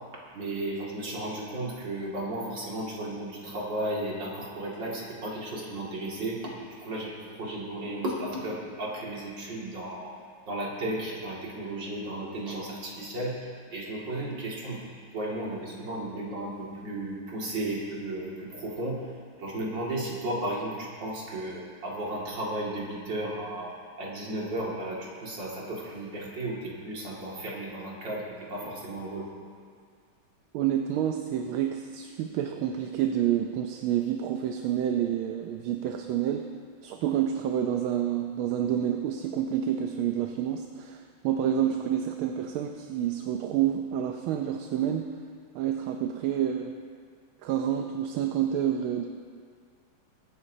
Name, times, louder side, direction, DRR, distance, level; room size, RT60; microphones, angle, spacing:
voice 1, 0.3-7.1 7.4-10.1 10.5-13.3 13.7-14.8 15.1-19.0 19.4-29.3, right 1 dB, 60° right, -5 dB, 2.9 m, -34 dB
voice 2, 30.5-36.5 36.8-45.1 45.5-46.8 47.4-49.1, right 10 dB, 80° right, 5 dB, 1.5 m, -28 dB
23.0 x 9.8 x 2.7 m, 2.1 s
omnidirectional pair, 2.3 m